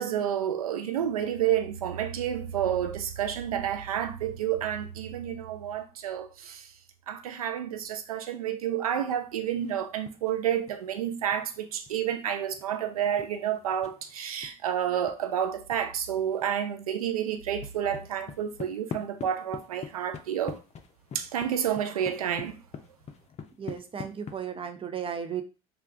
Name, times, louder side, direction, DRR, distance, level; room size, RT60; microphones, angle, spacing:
voice 1, 0.0-6.7 7.1-20.6 21.1-22.6, right 9 dB, 85° right, 0.4 m, -30 dB
sound 1, 9.6-10.4 10.7-15.2 15.7-15.8 16.1-16.6 16.9-24.4, left 7 dB, 40° left, 0.6 m, -44 dB
voice 2, 23.6-25.4, right 8 dB, 30° right, 0.6 m, -35 dB
3.3 x 2.4 x 3.6 m
hypercardioid pair, 60°, 18 cm